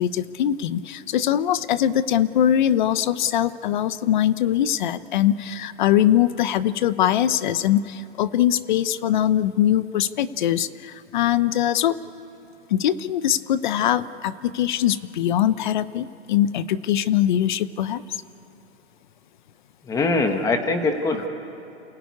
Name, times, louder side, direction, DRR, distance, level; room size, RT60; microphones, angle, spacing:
voice 1, 0.0-12.0 12.7-18.0, left 11 dB, 45° left, 16 dB, 0.6 m, -22 dB
voice 2, 19.8-21.3, left 3 dB, 10° left, 6 dB, 1.2 m, -22 dB
29.0 x 16.5 x 9.6 m, 2.8 s
hypercardioid pair, 165°, 35 cm